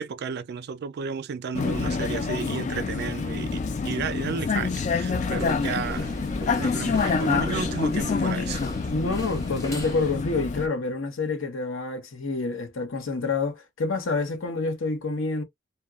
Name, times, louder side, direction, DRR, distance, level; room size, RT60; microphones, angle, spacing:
voice 1, 0.0-6.1 6.6-8.7, right 6 dB, 55° right, 0.4 m, -33 dB
Vehicle, 1.5-10.7, left 4 dB, 40° left, 0.3 m, -27 dB
sound 1, 5.1-10.2, equal, 15° left, 1.3 m, -37 dB
voice 2, 8.9-15.4, left 3 dB, 90° left, 0.8 m, -28 dB
2.8 x 2.2 x 2.3 m
head